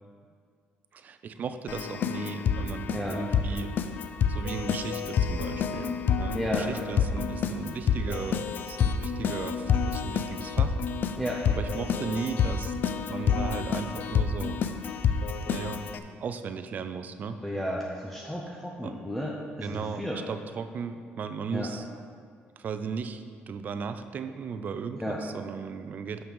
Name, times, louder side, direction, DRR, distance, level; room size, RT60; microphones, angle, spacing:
voice 1, 0.9-3.8 4.3-10.8 11.4-12.8 13.1-14.6 15.5-15.8 16.2-17.4 18.8-19.0 19.6-21.9 22.6-26.2, right 5 dB, 45° right, 10 dB, 0.4 m, -36 dB
Keyboard (musical), 1.7-16.0, left 6 dB, 55° left, 0.4 m, -28 dB
voice 2, 6.3-6.7 11.2-11.4 17.4-19.3 19.6-20.2 21.5-21.7 25.0-25.2, equal, 5° left, -2 dB, 0.7 m, -32 dB
6.5 x 5.8 x 5.4 m, 2.1 s
cardioid pair, 120°, 4 cm